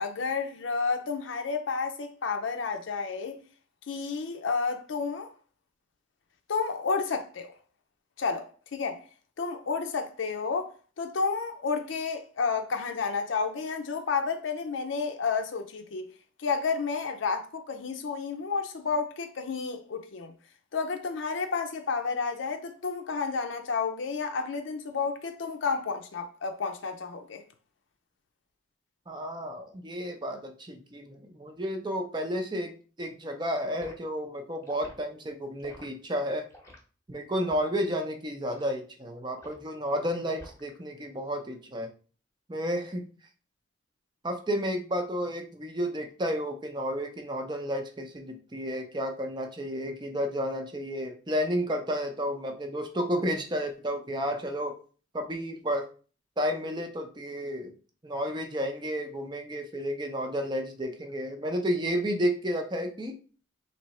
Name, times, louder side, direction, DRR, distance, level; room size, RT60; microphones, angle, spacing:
voice 1, 0.0-3.4 3.9-5.3 6.5-7.5 8.2-9.0 9.4-10.7 11.0-16.1 16.4-20.3 20.7-27.4, left 5 dB, 80° left, 0.5 m, -31 dB
voice 2, 29.1-32.7 33.0-36.4 37.1-41.9 42.5-43.0 44.2-54.7 55.1-55.8 56.4-57.7 58.0-63.2, equal, 25° right, 0.6 m, -31 dB
Liquid, 33.8-34.0 34.6-35.0 35.6-35.9 36.5-36.8 37.4-37.7 38.5-38.7 39.4-39.7 40.3-40.8 41.1-41.4, equal, 15° left, 0.9 m, -49 dB
3.3 x 2.8 x 4.2 m
head